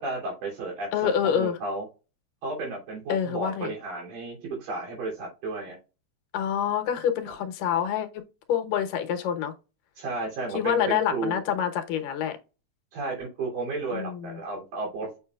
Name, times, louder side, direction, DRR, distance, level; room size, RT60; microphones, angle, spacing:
voice 1, 0.0-1.9 2.4-5.8 7.2-7.3 10.0-11.4 12.9-15.2, right 3 dB, 85° right, 4.8 m, -33 dB
voice 2, 0.9-1.6 3.1-3.7 6.3-8.2 8.5-9.5 10.5-12.4 13.9-14.4, left 9 dB, 80° left, 2.6 m, -27 dB
7.3 x 5.7 x 2.4 m
omnidirectional pair, 3.9 m